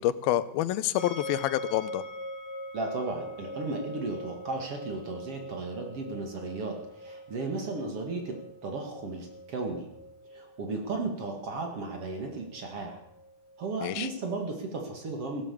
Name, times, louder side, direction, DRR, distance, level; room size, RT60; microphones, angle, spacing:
voice 1, 0.0-2.0 13.8-14.1, left 13 dB, 85° left, 15 dB, 2.6 m, -28 dB
sound 1, 1.0-13.9, equal, 50° left, 1.2 m, -43 dB
voice 2, 2.7-8.4 8.6-9.9 10.3-13.0 13.6-15.4, right 3 dB, 45° right, 3 dB, 2.7 m, -35 dB
16.0 x 12.5 x 7.0 m, 0.82 s
omnidirectional pair, 4.2 m